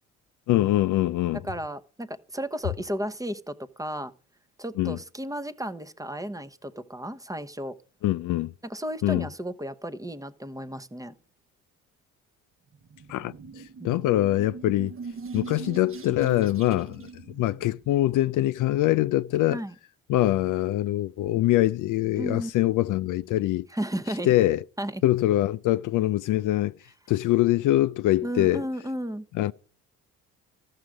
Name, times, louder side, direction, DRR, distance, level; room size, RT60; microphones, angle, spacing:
voice 1, 0.5-1.4 4.8-5.0 8.0-8.5 9.0-9.3 13.1-14.9 15.3-19.6 20.1-23.7 24.2-24.6 25.0-26.7 27.1-28.6 29.3-29.5, left 15 dB, 60° left, 0.4 m, -24 dB
voice 2, 1.4-4.1 4.6-7.8 8.6-11.1 13.8-14.0 19.5-19.7 22.2-22.7 23.7-24.3 24.8-25.0 28.2-29.3, equal, 10° right, 0.9 m, -34 dB
sound 1, 12.7-18.2, right 5 dB, 35° right, 0.9 m, -41 dB
14.0 x 6.5 x 4.8 m
supercardioid pair, 60°, 36 cm